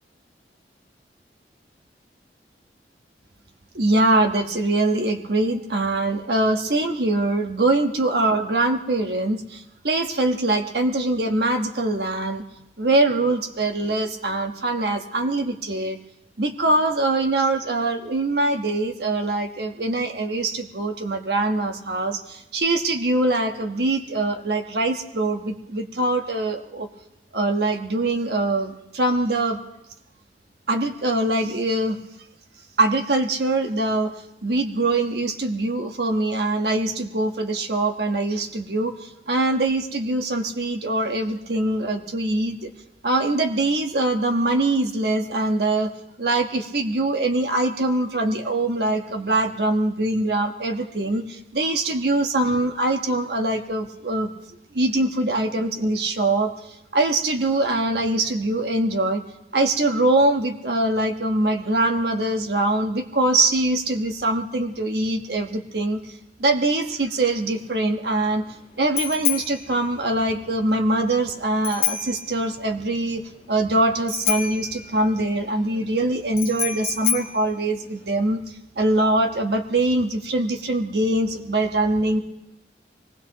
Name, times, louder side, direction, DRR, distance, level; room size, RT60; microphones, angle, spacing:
voice 1, 3.7-12.4 12.8-16.0 16.4-26.9 27.3-29.6 30.7-32.0 32.8-34.1 34.4-42.7 43.0-45.9 46.2-54.3 54.7-56.5 56.9-59.2 59.5-66.0 66.4-68.4 68.8-73.2 73.5-78.4 78.8-82.2, right 2 dB, 65° right, 5 dB, 1.3 m, -23 dB
Bicycle bell, 67.3-78.4, left 10 dB, 35° left, 1.5 m, -30 dB
24.0 x 19.0 x 3.0 m, 0.89 s
head